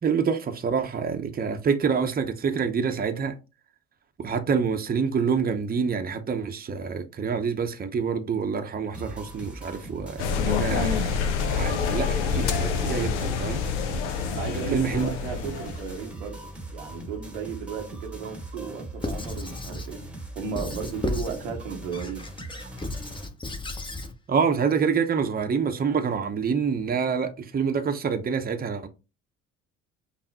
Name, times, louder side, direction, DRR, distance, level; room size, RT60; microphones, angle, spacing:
voice 1, 0.0-3.4 4.2-11.2 11.5-13.6 14.5-15.1 15.4-15.5 24.3-28.9, right 6 dB, 25° right, 0.7 m, -27 dB
sound 1, 8.9-23.3, right 2 dB, 5° right, 1.1 m, -40 dB
sound 2, 10.2-16.0, left 6 dB, 90° left, 0.6 m, -27 dB
voice 2, 14.3-16.4 16.7-20.0 20.4-22.2, right 6 dB, 90° right, 0.9 m, -34 dB
Squeak / Writing, 19.0-19.9 20.6-21.4 21.9-24.1, left 3 dB, 15° left, 0.8 m, -34 dB
5.7 x 2.0 x 2.8 m
hypercardioid pair, 60°, 35 cm